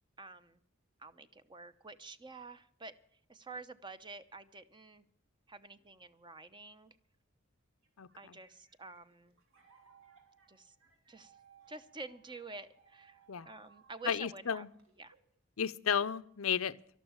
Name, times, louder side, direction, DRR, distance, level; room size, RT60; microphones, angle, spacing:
voice 1, 0.2-0.6 1.0-2.9 3.3-5.0 5.5-7.0 8.1-9.4 10.5-10.7 11.1-11.4 11.7-13.2 13.4-14.7 15.0-15.2, right 3 dB, 20° right, 12 dB, 0.9 m, -49 dB
sound 1, 7.8-15.4, right 6 dB, 75° right, 3.3 m, -65 dB
voice 2, 14.1-14.7 15.6-17.0, left 7 dB, 85° left, 13 dB, 0.7 m, -33 dB
12.5 x 12.5 x 7.3 m, 0.65 s
head